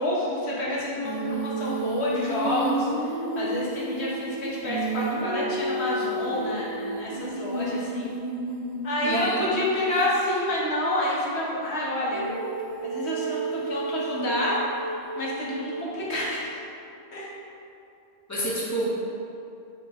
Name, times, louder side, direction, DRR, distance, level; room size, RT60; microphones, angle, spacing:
voice 1, 0.0-8.1 8.8-12.2 12.8-14.6 15.2-16.6 17.1-17.3, left 1 dB, 85° left, -6 dB, 1.6 m, -28 dB
Female singing, 1.0-9.9 12.1-16.3, right 2 dB, 35° right, 0.5 m, -32 dB
voice 2, 9.0-9.5 18.3-18.8, right 1 dB, 15° left, -7 dB, 1.3 m, -28 dB
6.4 x 5.2 x 3.7 m, 2.6 s
omnidirectional pair, 1.1 m